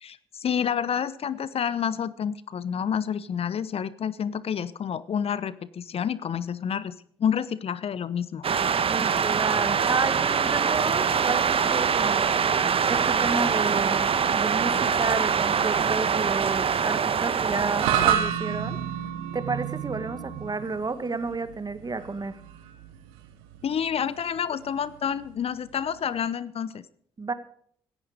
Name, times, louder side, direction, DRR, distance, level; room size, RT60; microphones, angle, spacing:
voice 1, 0.0-8.4 23.6-26.8, left 8 dB, 55° left, 17 dB, 0.9 m, -29 dB
sound 1, 8.4-18.1, right 6 dB, 50° right, 1.4 m, -24 dB
voice 2, 8.9-12.5 12.9-18.8 19.3-22.4 27.2-27.3, right 3 dB, 35° right, 12 dB, 1.8 m, -31 dB
sound 2, 17.8-26.2, right 10 dB, 85° right, 1.2 m, -31 dB
17.0 x 13.5 x 5.1 m, 0.62 s
hypercardioid pair, 40°, 12 cm